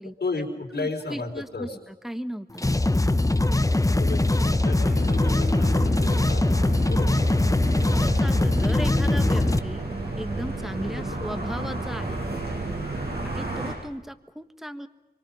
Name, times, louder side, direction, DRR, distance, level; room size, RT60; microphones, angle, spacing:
voice 1, 0.0-1.8 3.8-6.5 6.9-7.4 10.6-11.0, left 3 dB, 75° left, 1 dB, 4.7 m, -34 dB
voice 2, 0.7-1.7 2.0-2.7 7.9-9.9 10.1-12.3 13.3-14.9, equal, ahead, 9 dB, 1.5 m, -36 dB
sound 1, 2.5-9.6, left 2 dB, 20° left, 0.9 m, -21 dB
sound 2, 3.2-11.7, equal, 20° right, 3.4 m, -46 dB
sound 3, 3.9-13.7, right 2 dB, 70° right, 7.3 m, -32 dB
25.5 x 24.0 x 5.7 m, 1.1 s
wide cardioid pair, 60°, 17 cm